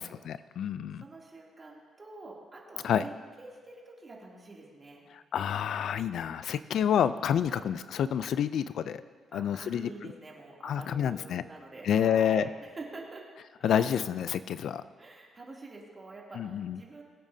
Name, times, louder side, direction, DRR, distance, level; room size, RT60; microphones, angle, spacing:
voice 1, 0.0-1.0 2.8-3.0 5.1-9.0 9.3-9.9 10.6-11.4 11.8-12.5 13.6-14.8 16.3-16.8, left 9 dB, 70° left, 14 dB, 0.4 m, -28 dB
voice 2, 1.0-3.1 3.4-5.0 7.5-7.6 9.3-12.5 12.7-13.2 13.6-14.0 15.0-17.0, right 2 dB, 30° right, -3 dB, 2.8 m, -47 dB
22.0 x 8.8 x 2.8 m, 1.5 s
cardioid pair, 90°, 0 cm